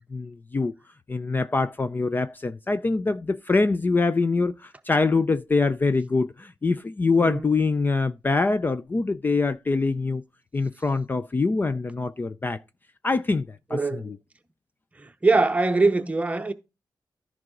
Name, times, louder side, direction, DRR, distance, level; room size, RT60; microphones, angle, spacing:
voice 1, 0.1-0.7 1.1-10.2 10.5-12.6 13.0-14.2, left 3 dB, 25° left, 0.4 m, -24 dB
voice 2, 13.7-14.1 15.0-16.5, right 3 dB, 15° right, 0.9 m, -23 dB
14.0 x 4.8 x 3.8 m
wide cardioid pair, 155°, 8 cm